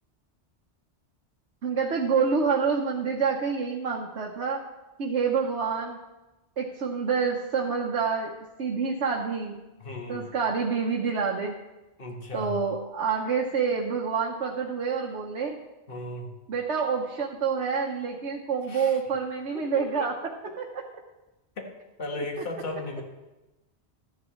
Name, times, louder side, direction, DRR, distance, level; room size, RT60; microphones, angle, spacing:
voice 1, 1.6-4.6 5.0-6.0 6.6-8.3 8.6-9.6 10.1-11.5 12.3-15.6 16.5-20.1 20.6-20.7, right 5 dB, 80° right, 0 dB, 1.2 m, -27 dB
voice 2, 9.8-10.2 12.0-12.5 15.9-16.3 18.7-19.0 19.5-19.9 22.0-23.0, left 2 dB, 55° left, 1 dB, 1.7 m, -35 dB
13.5 x 11.0 x 3.1 m, 1.1 s
omnidirectional pair, 1.2 m